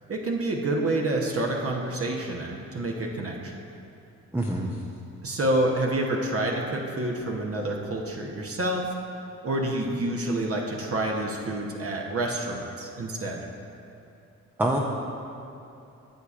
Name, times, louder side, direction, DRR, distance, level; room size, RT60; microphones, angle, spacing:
voice 1, 0.1-3.6 5.2-8.9 9.4-13.5, right 1 dB, 45° right, 0 dB, 1.0 m, -28 dB
voice 2, 4.3-4.8 14.6-14.8, right 1 dB, 5° right, -1 dB, 0.6 m, -25 dB
9.3 x 6.8 x 2.5 m, 2.8 s
supercardioid pair, 55°, 33 cm